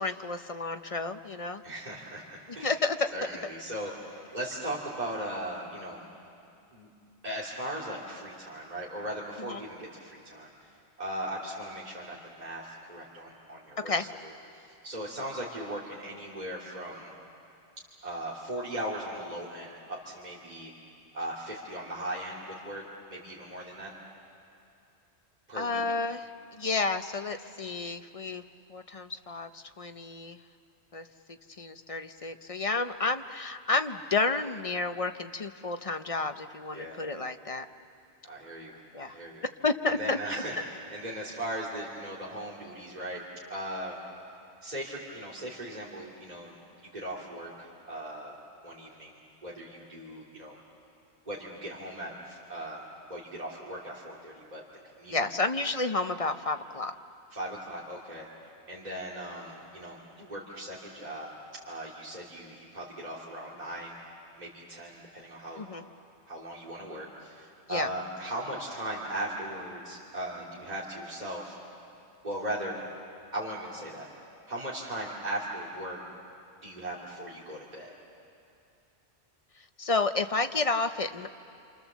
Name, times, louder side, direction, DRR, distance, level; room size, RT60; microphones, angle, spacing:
voice 1, 0.0-1.6 2.6-3.1 9.5-9.6 13.8-14.0 25.5-28.4 28.7-30.4 30.9-37.7 38.9-39.1 39.6-40.2 55.1-56.9 65.6-65.8 67.7-67.9 79.8-81.3, left 3 dB, 35° left, 8 dB, 0.7 m, -31 dB
voice 2, 1.6-2.8 3.1-6.0 6.7-6.9 7.2-10.7 11.0-14.1 14.5-17.1 18.0-20.7 21.1-22.8 23.1-23.9 25.5-25.8 36.7-37.0 38.2-39.4 39.8-43.2 43.5-44.0 44.6-46.5 46.8-48.3 48.6-50.6 51.3-52.8 53.1-54.6 55.0-55.2 57.3-58.3 58.7-61.3 61.7-64.0 64.4-65.7 66.3-71.6 72.2-72.8 73.3-74.1 74.5-76.0 76.6-77.9, right 1 dB, 40° right, -6 dB, 2.7 m, -38 dB
28.0 x 27.5 x 7.3 m, 2.6 s
omnidirectional pair, 1.1 m